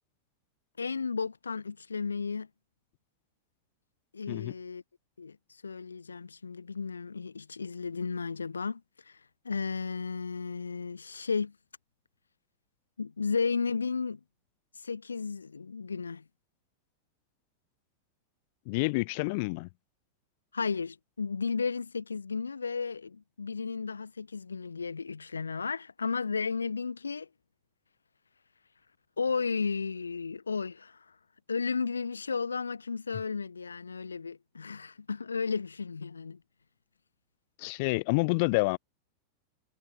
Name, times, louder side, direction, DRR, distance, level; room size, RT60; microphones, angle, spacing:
voice 1, 0.8-2.5 4.1-4.8 5.2-5.4 5.6-9.2 9.4-11.5 13.0-14.2 14.7-16.2 20.5-27.3 29.2-31.1 31.5-36.4, left 5 dB, 75° left, 1.1 m, -34 dB
voice 2, 18.7-19.7 37.6-38.8, left 28 dB, 45° left, 0.6 m, -28 dB
figure-of-eight pair, 90°, 0 cm